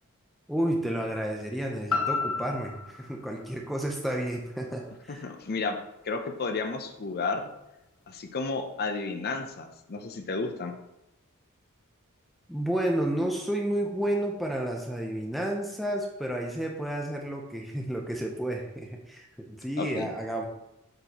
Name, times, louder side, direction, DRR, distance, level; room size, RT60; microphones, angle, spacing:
voice 1, 0.5-5.3 12.5-20.5, right 1 dB, ahead, 0 dB, 0.6 m, -31 dB
sound 1, 1.9-6.0 6.4-6.5, left 4 dB, 75° left, 0.8 m, -34 dB
voice 2, 5.2-5.8 6.0-7.4 8.1-10.7 19.8-20.1, left 4 dB, 45° left, 5 dB, 0.6 m, -32 dB
7.9 x 4.4 x 2.9 m, 0.88 s
head